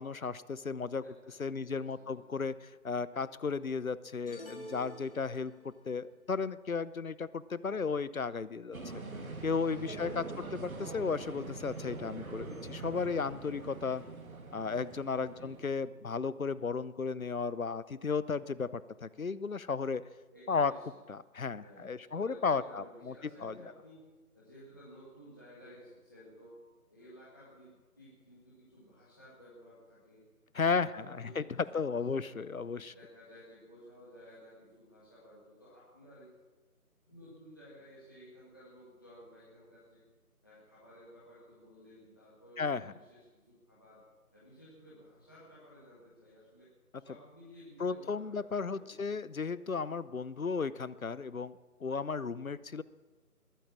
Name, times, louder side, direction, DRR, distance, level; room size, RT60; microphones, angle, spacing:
voice 1, 0.0-1.0 1.4-9.0 9.4-14.0 14.5-20.1 20.5-20.7 21.1-23.1 23.4-23.5 30.5-31.4 31.7-32.9 42.6-42.9 47.8-52.8, left 5 dB, 60° left, 17 dB, 0.7 m, -34 dB
voice 2, 1.0-2.3 9.6-10.4 15.3-15.5 20.3-20.9 21.6-24.0 24.3-26.5 26.9-30.2 30.7-31.4 31.7-32.3 32.8-36.3 37.1-40.0 40.4-44.0 44.3-49.1, equal, 15° left, -10 dB, 1.9 m, -55 dB
sound 1, 4.3-5.8, equal, 35° left, 2.5 m, -48 dB
sound 2, 8.7-15.9, right 3 dB, 60° right, 2.1 m, -44 dB
21.5 x 9.0 x 7.4 m, 1.3 s
figure-of-eight pair, 175°, 46 cm